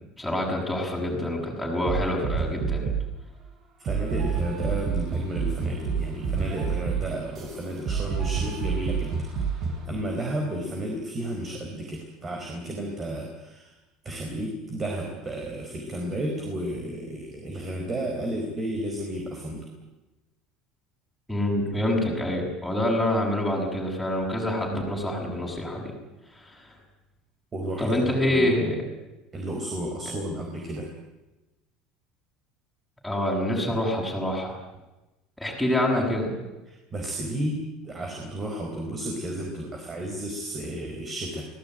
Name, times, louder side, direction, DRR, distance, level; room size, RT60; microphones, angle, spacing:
voice 1, 0.2-2.9 21.3-25.8 26.3-26.7 27.8-28.8 33.0-34.6 35.4-36.3, left 1 dB, ahead, -2 dB, 6.8 m, -26 dB
sound 1, 1.9-3.2 3.9-9.8, right 6 dB, 35° right, 6.7 m, -28 dB
voice 2, 3.8-9.1 9.4-13.7 14.0-19.7 27.5-28.7 29.3-30.9 36.7-41.5, right 1 dB, 20° right, 2 dB, 4.6 m, -32 dB
25.0 x 18.5 x 9.2 m, 1.0 s
cardioid pair, 165°, 0 cm